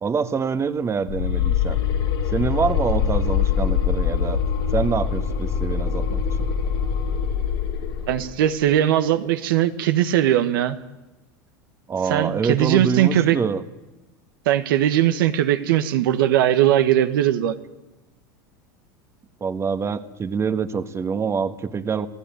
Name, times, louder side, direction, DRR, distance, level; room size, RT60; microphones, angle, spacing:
voice 1, 0.0-1.8 2.3-4.4 4.7-6.5 11.9-13.6 19.4-22.1, right 5 dB, 25° right, 11 dB, 1.4 m, -25 dB
sound 1, 1.1-8.3, left 7 dB, 75° left, 4.8 m, -23 dB
voice 2, 8.1-10.8 12.1-13.4 14.4-17.6, right 11 dB, 80° right, 9 dB, 1.4 m, -19 dB
28.0 x 16.0 x 9.2 m, 1.1 s
hypercardioid pair, 105°, 11 cm